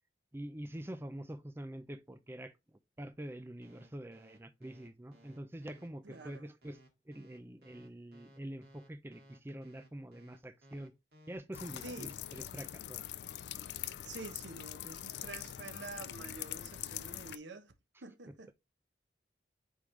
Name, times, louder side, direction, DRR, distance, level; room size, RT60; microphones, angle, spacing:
voice 1, 0.3-2.5 3.0-6.8 7.1-10.9 11.3-13.0, right 1 dB, 15° right, 0.5 m, -45 dB
sound 1, 3.6-11.4, right 1 dB, 60° right, 1.9 m, -60 dB
voice 2, 6.0-6.5 11.8-12.2 13.8-17.7 18.0-18.5, right 3 dB, 90° right, 1.0 m, -48 dB
sound 2, 11.5-17.4, left 12 dB, 75° left, 0.4 m, -43 dB
8.3 x 3.8 x 3.1 m
head